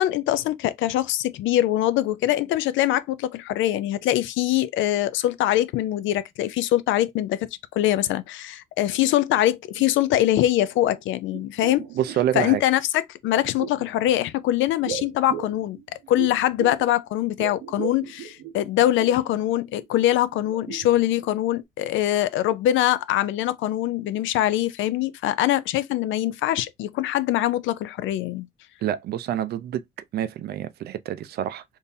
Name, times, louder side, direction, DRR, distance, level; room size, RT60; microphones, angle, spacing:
voice 1, 0.0-11.9 12.3-15.8 16.1-28.5, left 13 dB, 65° left, 0.4 m, -23 dB
sound 1, 9.8-9.9 10.2-11.0 11.3-12.5 13.2-13.9 14.8-16.9 17.2-19.3 19.7-19.9 20.3-21.3 21.6-21.7, right 10 dB, 90° right, 0.8 m, -38 dB
voice 2, 12.0-12.6 28.8-29.8 30.1-31.6, right 11 dB, 50° right, 0.4 m, -27 dB
3.7 x 2.6 x 2.6 m
cardioid pair, 135°, 21 cm